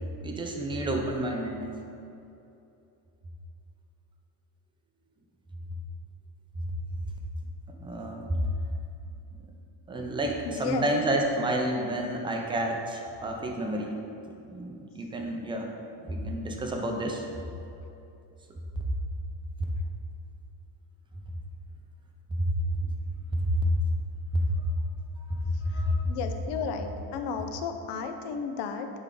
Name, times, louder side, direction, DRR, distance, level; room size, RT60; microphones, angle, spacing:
voice 1, 0.2-1.7 7.8-8.4 9.9-13.9 14.5-15.7 16.1-17.2 22.4-22.7 23.3-23.7 24.3-24.7 25.3-26.0, right 1 dB, 10° right, 1 dB, 0.5 m, -29 dB
voice 2, 10.5-10.9 25.7-28.9, left 6 dB, 60° left, 6 dB, 0.7 m, -34 dB
10.5 x 3.5 x 3.8 m, 2.8 s
cardioid pair, 150°, 46 cm